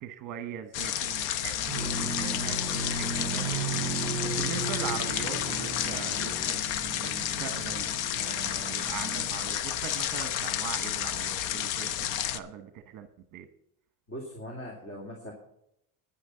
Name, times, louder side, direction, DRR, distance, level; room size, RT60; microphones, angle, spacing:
voice 1, 0.0-7.9 8.2-13.5, right 9 dB, 45° right, 8 dB, 1.1 m, -41 dB
sound 1, 0.7-12.4, left 11 dB, 75° left, 1.0 m, -31 dB
sound 2, 1.7-9.3, right 3 dB, 10° right, 3.9 m, -36 dB
voice 2, 14.1-15.3, equal, 30° left, 1 dB, 2.5 m, -40 dB
10.0 x 10.0 x 5.6 m, 0.75 s
cardioid pair, 155°, 45 cm